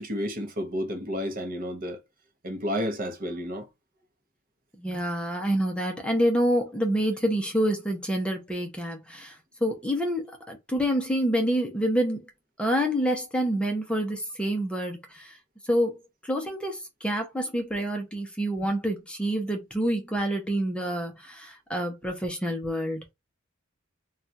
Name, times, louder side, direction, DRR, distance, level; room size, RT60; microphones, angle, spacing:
voice 1, 0.0-2.0 2.4-3.7, equal, 45° right, 0.8 m, -31 dB
voice 2, 4.8-12.2 12.6-15.4 15.6-23.0, equal, 5° left, 0.6 m, -27 dB
2.3 x 2.3 x 3.9 m
head